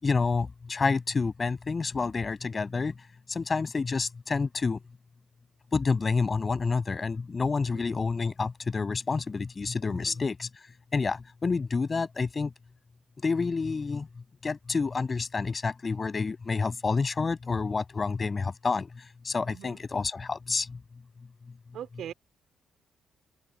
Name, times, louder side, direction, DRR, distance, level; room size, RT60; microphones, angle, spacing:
voice 1, 0.0-2.9 3.3-4.8 5.7-10.5 10.9-12.5 13.2-14.1 14.4-18.9 19.2-20.7, left 4 dB, 30° left, 6.7 m, -28 dB
voice 2, 19.5-19.8 21.7-22.1, right 10 dB, 70° right, 3.6 m, -42 dB
cardioid pair, 90°, 0 cm